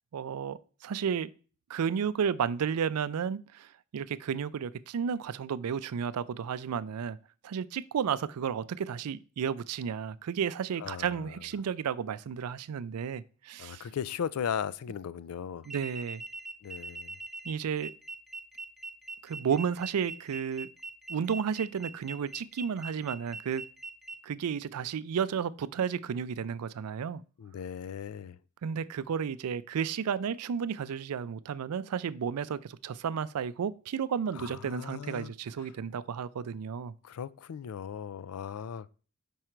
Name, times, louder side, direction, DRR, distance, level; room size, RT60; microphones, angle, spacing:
voice 1, 0.1-1.3 1.7-7.2 7.4-13.9 15.7-16.2 17.4-17.9 19.2-20.7 21.1-23.6 24.2-27.2 28.6-36.9, right 7 dB, 90° right, 0.4 m, -32 dB
voice 2, 10.8-11.2 13.6-15.7 16.6-17.2 27.4-28.4 34.3-35.3 37.0-38.9, left 8 dB, 75° left, 0.4 m, -37 dB
sound 1, 15.6-24.2, right 3 dB, ahead, 0.6 m, -42 dB
5.4 x 4.9 x 4.5 m
head